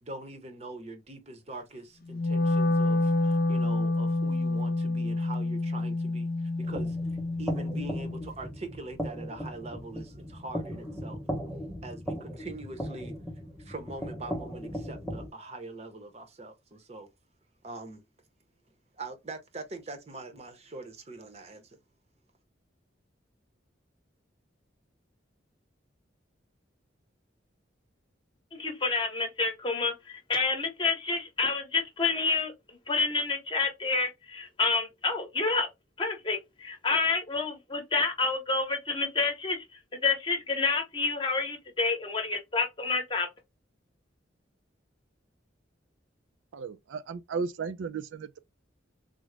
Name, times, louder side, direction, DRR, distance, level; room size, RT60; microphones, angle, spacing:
voice 1, 0.0-7.0 7.4-11.2 11.8-13.2 13.6-17.1 17.6-18.0 19.0-21.8, right 2 dB, 35° right, 0.7 m, -43 dB
Wind instrument woodwind instrument, 2.1-8.3, left 2 dB, 50° left, 0.3 m, -28 dB
sound 1, 6.6-15.3, equal, 5° right, 0.8 m, -37 dB
voice 2, 28.5-32.5 32.9-35.7 36.0-39.6 40.0-43.3, left 4 dB, 25° left, 0.8 m, -28 dB
voice 3, 46.5-48.4, right 5 dB, 80° right, 0.3 m, -35 dB
3.7 x 2.0 x 3.2 m
head